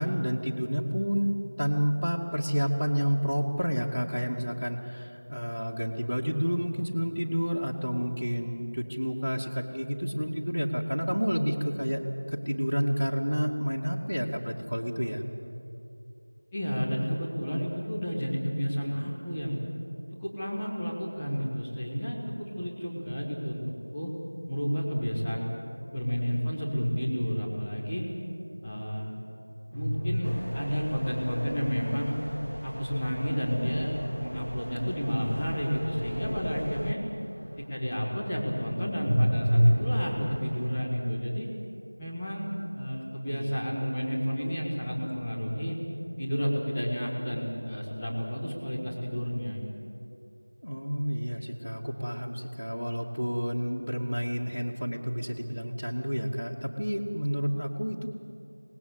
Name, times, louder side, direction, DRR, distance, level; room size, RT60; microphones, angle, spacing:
voice 1, 0.0-12.0 12.3-15.2 24.9-25.0 34.8-34.9 43.3-43.5 50.6-58.1, equal, 80° right, -4 dB, 2.5 m, -30 dB
voice 2, 16.5-19.6 20.2-23.6 23.9-24.1 24.5-25.5 25.9-28.0 28.6-29.1 29.7-32.1 32.6-37.0 37.7-41.5 42.0-45.8 46.2-49.6, equal, 5° left, -13 dB, 1.4 m, -31 dB
sound 1, 29.7-31.4 33.6-37.4 37.7-40.7, equal, 45° right, 3.1 m, -29 dB
sound 2, 30.2-36.9, equal, 90° left, 2.5 m, -39 dB
26.0 x 20.5 x 8.2 m, 2.7 s
figure-of-eight pair, 175°, 0 cm